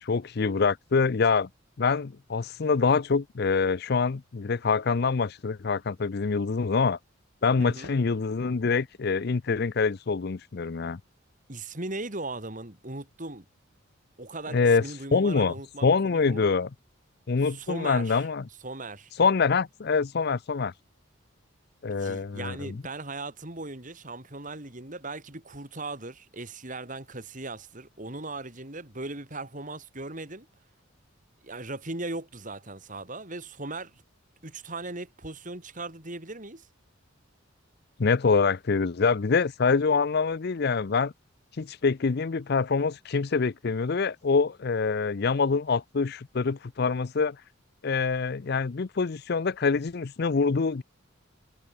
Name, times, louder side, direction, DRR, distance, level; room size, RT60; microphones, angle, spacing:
voice 1, 0.0-1.5 1.8-7.0 7.4-11.0 14.5-14.8 15.1-15.5 15.8-16.7 17.3-18.4 19.2-20.7 21.8-22.6 38.0-41.1 41.6-47.4 47.8-50.8, left 4 dB, 55° left, 0.5 m, -25 dB
voice 2, 7.6-7.9 11.5-13.4 14.2-16.5 17.4-18.3 18.6-19.1 21.9-30.5 31.4-34.0 34.4-36.7, right 2 dB, 40° right, 3.1 m, -38 dB
head